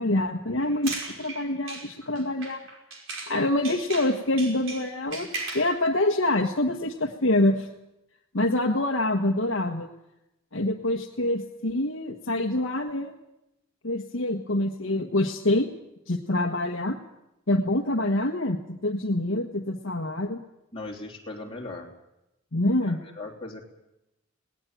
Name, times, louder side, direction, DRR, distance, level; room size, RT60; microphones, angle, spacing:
voice 1, 0.0-2.6 3.3-5.3 5.5-7.7 8.3-9.9 10.5-13.1 13.8-15.7 16.1-17.0 17.5-20.4 22.5-23.0, left 1 dB, 60° left, 2 dB, 1.4 m, -26 dB
sound 1, 0.6-3.4 3.6-5.7, right 3 dB, 60° right, 5.5 m, -37 dB
voice 2, 20.7-21.9 22.8-23.7, left 2 dB, 25° left, -1 dB, 3.5 m, -38 dB
19.5 x 18.5 x 9.2 m, 0.89 s
head